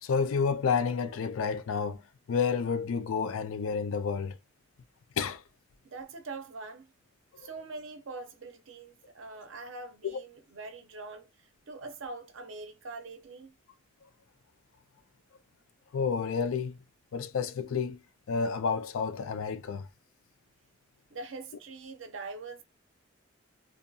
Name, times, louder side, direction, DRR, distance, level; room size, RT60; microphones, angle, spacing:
voice 1, 0.0-2.0 2.3-4.4 5.2-5.4 10.0-10.2 15.9-16.8 17.1-18.0 18.3-19.9, left 5 dB, 85° left, 0.4 m, -30 dB
voice 2, 5.8-6.9 7.4-11.3 11.7-13.5 21.1-22.6, right 3 dB, 70° right, 0.6 m, -43 dB
2.7 x 2.5 x 2.3 m
head